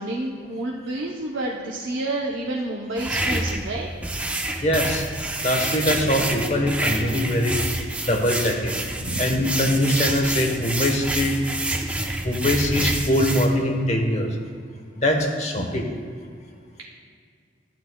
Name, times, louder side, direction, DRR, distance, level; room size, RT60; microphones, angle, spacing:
voice 1, 0.0-3.9 6.0-6.1 9.0-9.2 15.5-15.7, right 1 dB, 90° right, -3 dB, 0.8 m, -29 dB
sound 1, 3.0-13.5, right 1 dB, 5° right, 0.5 m, -27 dB
voice 2, 4.6-5.0 5.4-7.6 8.1-8.7 9.2-11.4 12.2-14.3 15.0-15.9, left 1 dB, 35° left, 2 dB, 1.0 m, -22 dB
12.0 x 10.5 x 2.3 m, 2.1 s
head